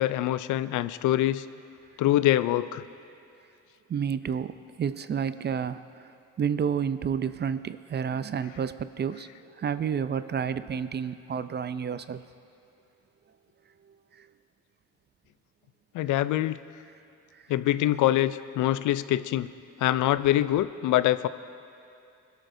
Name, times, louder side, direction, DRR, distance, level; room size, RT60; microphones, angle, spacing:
voice 1, 0.0-1.5 2.0-2.8 15.9-16.6 17.5-19.5 19.8-21.3, left 14 dB, 80° left, 15 dB, 0.5 m, -24 dB
voice 2, 3.9-5.8 6.4-9.3 9.6-12.2, right 7 dB, 35° right, 13 dB, 0.4 m, -30 dB
20.5 x 12.5 x 2.7 m, 2.7 s
cardioid pair, 90°, 30 cm